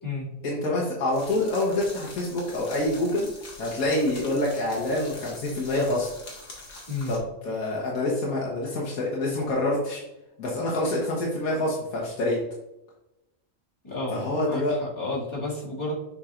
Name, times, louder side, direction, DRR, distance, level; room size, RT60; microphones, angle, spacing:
voice 1, 0.4-3.3 3.6-6.1 7.1-10.0 10.4-12.4 14.1-14.8, left 1 dB, 85° left, -5 dB, 1.6 m, -26 dB
sound 1, 1.1-7.2, left 2 dB, 65° left, 1.8 m, -44 dB
voice 2, 13.8-14.2 14.5-15.9, left 2 dB, 20° left, -8 dB, 2.2 m, -31 dB
7.2 x 5.4 x 2.5 m, 0.93 s
omnidirectional pair, 1.5 m